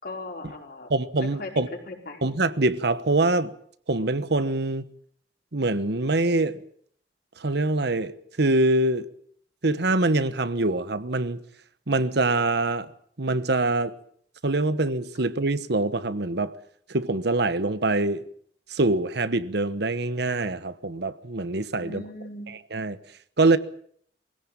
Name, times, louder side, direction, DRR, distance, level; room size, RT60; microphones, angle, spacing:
voice 1, 0.0-0.9 1.2-2.2 21.8-22.5, left 2 dB, 55° left, 4.9 m, -38 dB
voice 2, 0.9-1.7 2.2-3.5 3.9-4.9 5.5-6.6 7.4-9.1 9.6-11.4 11.9-12.9 13.2-13.9 14.4-16.5 16.9-18.2 18.7-22.0 22.7-23.0 23.4-23.6, right 2 dB, 65° right, 1.2 m, -24 dB
21.5 x 16.5 x 8.8 m
head